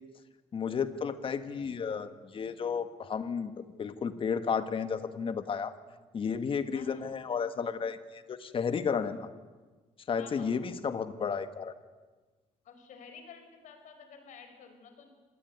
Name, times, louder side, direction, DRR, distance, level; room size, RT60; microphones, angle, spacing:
voice 1, 0.5-5.7 6.1-9.3 10.1-11.7, left 6 dB, 45° left, 10 dB, 1.7 m, -33 dB
voice 2, 6.7-7.1 10.2-10.7 12.6-15.1, left 6 dB, 80° left, 7 dB, 5.3 m, -51 dB
26.0 x 19.0 x 9.5 m, 1.3 s
cardioid pair, 125°, 13 cm